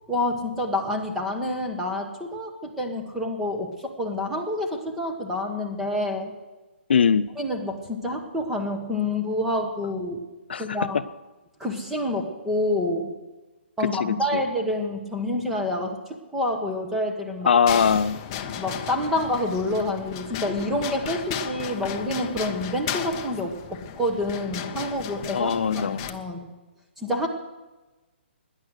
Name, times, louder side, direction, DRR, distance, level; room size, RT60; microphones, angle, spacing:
voice 1, 0.1-6.3 7.4-10.2 10.6-11.0 11.6-13.1 13.8-16.0 16.3-17.5 18.6-26.5 27.0-27.3, left 1 dB, 5° right, 2 dB, 1.2 m, -28 dB
voice 2, 6.9-7.3 10.5-11.0 14.0-14.4 17.5-18.2 25.3-26.0, left 6 dB, 60° left, 14 dB, 0.5 m, -21 dB
sound 1, 17.7-26.1, left 9 dB, 20° left, 0.7 m, -34 dB
18.0 x 10.5 x 6.5 m, 1.2 s
hypercardioid pair, 175°, 6 cm